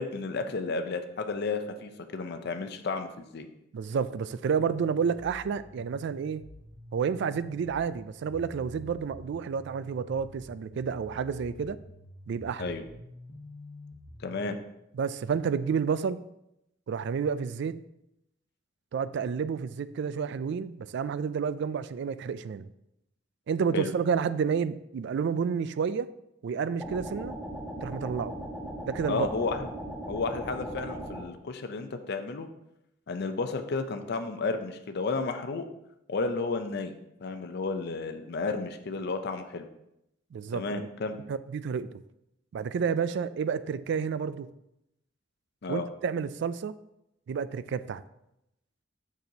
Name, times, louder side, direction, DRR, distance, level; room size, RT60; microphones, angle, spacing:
voice 1, 0.0-3.5 12.6-12.8 14.2-14.6 23.7-23.9 29.1-29.7 30.1-32.5 33.1-35.7 36.1-37.0 37.2-39.6 40.5-41.2 45.6-45.9, left 4 dB, 60° left, 7 dB, 0.6 m, -32 dB
voice 2, 3.7-6.4 6.9-11.8 12.3-12.7 14.9-16.2 16.9-17.8 18.9-22.7 23.5-26.1 26.4-27.3 27.8-28.3 28.9-29.3 40.3-40.9 41.3-41.9 42.5-44.5 45.7-46.7 47.3-48.0, right 6 dB, 65° right, 15 dB, 0.3 m, -30 dB
sound 1, 4.5-14.5, left 1 dB, 90° left, 1.0 m, -49 dB
sound 2, 26.8-31.3, right 1 dB, 5° right, 1.2 m, -38 dB
6.6 x 6.1 x 2.8 m, 0.83 s
head